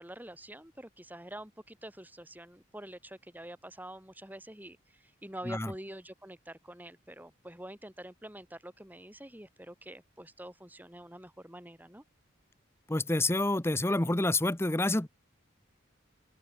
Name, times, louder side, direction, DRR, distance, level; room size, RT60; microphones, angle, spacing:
voice 1, 0.0-12.0, right 1 dB, 10° right, 6.2 m, -46 dB
voice 2, 12.9-15.1, left 2 dB, 10° left, 0.9 m, -28 dB
open air
head